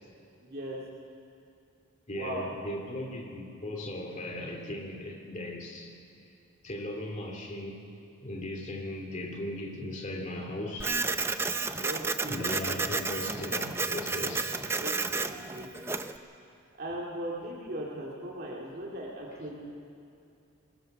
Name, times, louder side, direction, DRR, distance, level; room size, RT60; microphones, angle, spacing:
voice 1, 0.4-0.8 2.1-2.5 11.7-12.8 14.8-16.0 16.8-19.7, right 1 dB, 50° right, -3 dB, 2.4 m, -39 dB
voice 2, 2.1-5.9 6.6-7.8 8.2-11.0 12.3-14.8, left 1 dB, 35° left, 1 dB, 2.5 m, -38 dB
Printer, 10.8-16.2, right 3 dB, 10° right, 0.6 m, -31 dB
22.0 x 20.0 x 6.6 m, 2.6 s
head